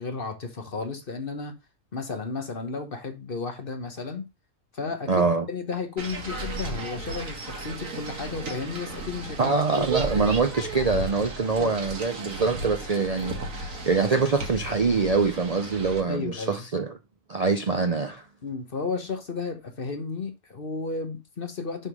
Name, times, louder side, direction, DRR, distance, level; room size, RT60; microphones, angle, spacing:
voice 1, 0.0-1.6 1.9-4.3 4.7-9.6 11.5-11.7 16.1-16.6 18.4-21.9, left 4 dB, 40° left, 1.3 m, -33 dB
voice 2, 5.1-5.5 9.4-16.9 17.3-18.2, right 4 dB, 40° right, 0.6 m, -24 dB
sound 1, 6.0-16.0, right 2 dB, 65° right, 2.0 m, -35 dB
6.8 x 3.7 x 6.2 m
omnidirectional pair, 1.5 m